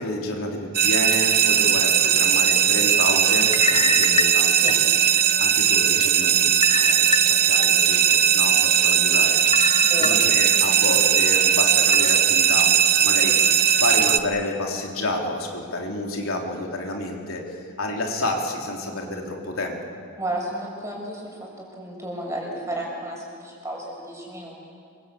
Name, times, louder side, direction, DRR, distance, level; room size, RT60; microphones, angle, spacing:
voice 1, 0.0-4.8 5.2-12.7 13.0-19.8, left 1 dB, 70° left, 0 dB, 3.5 m, -30 dB
sound 1, 0.7-14.2, right 8 dB, 45° right, 1.1 m, -19 dB
sound 2, 3.4-5.2 5.7-5.8 6.6-7.7 8.1-8.2 9.5-10.6 11.0-11.1 11.9-12.2, left 5 dB, 25° left, 0.7 m, -27 dB
voice 2, 9.8-10.2 20.2-24.6, right 1 dB, 15° right, -1 dB, 6.6 m, -33 dB
27.0 x 24.0 x 8.5 m, 2.4 s
head